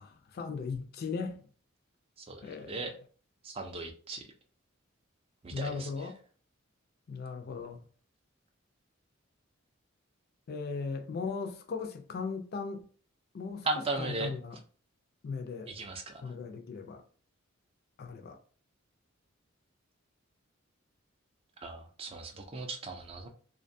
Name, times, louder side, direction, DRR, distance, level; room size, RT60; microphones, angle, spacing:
voice 1, 0.0-1.4 2.4-2.9 5.5-6.2 7.1-7.8 10.5-12.8 13.3-14.6 15.2-15.8 16.2-17.0 18.0-18.4, left 4 dB, 50° left, 0.4 m, -38 dB
voice 2, 2.2-2.9 3.4-4.3 5.4-5.9 13.7-14.3 15.7-16.2 21.6-23.3, right 3 dB, 30° right, 0.3 m, -37 dB
2.5 x 2.2 x 2.6 m
head